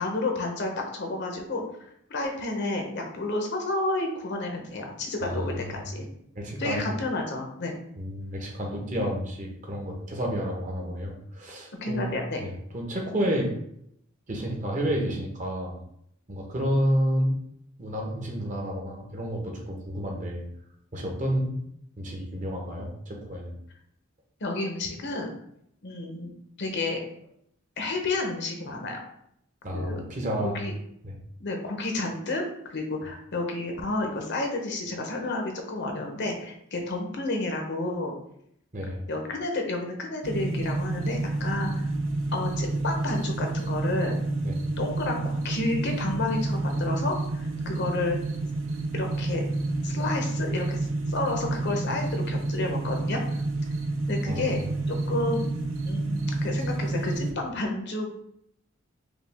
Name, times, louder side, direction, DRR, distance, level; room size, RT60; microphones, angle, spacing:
voice 1, 0.0-1.6 2.1-6.1 6.6-7.8 11.8-12.4 24.4-25.3 25.8-26.3 26.6-27.0 27.8-29.0 29.7-30.0 30.4-30.7 31.4-38.1 39.1-41.8 42.3-44.2 44.8-48.2 48.9-49.4 49.8-50.8 51.1-53.2 54.1-54.6 54.9-55.5 55.8-58.1, left 2 dB, 60° left, 3 dB, 0.8 m, -30 dB
voice 2, 5.2-5.8 6.3-6.8 8.0-13.5 14.3-15.7 16.3-17.3 17.8-20.4 20.9-21.5 22.0-23.5 29.6-30.7 31.0-31.2 38.7-39.1 44.4-44.6 54.3-54.5, equal, 40° right, 0 dB, 1.0 m, -30 dB
sound 1, 40.2-57.3, right 2 dB, 80° right, 0.6 m, -29 dB
5.0 x 2.3 x 3.5 m, 0.73 s
head